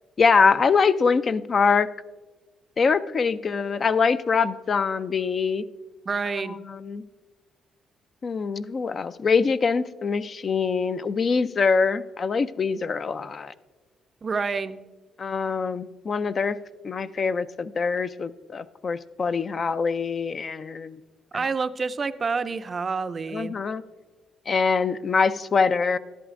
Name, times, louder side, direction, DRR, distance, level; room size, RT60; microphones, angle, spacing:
voice 1, 0.2-1.9 2.8-5.7 6.4-7.0 8.2-13.5 15.2-16.6 16.8-21.0 21.3-21.5 23.3-23.8 24.5-26.0, left 5 dB, 45° left, 13 dB, 0.4 m, -24 dB
voice 2, 6.1-6.6 14.2-14.8 21.3-23.5, right 4 dB, 35° right, 12 dB, 0.4 m, -28 dB
12.0 x 11.0 x 2.5 m, 1.3 s
cardioid pair, 90°, 0 cm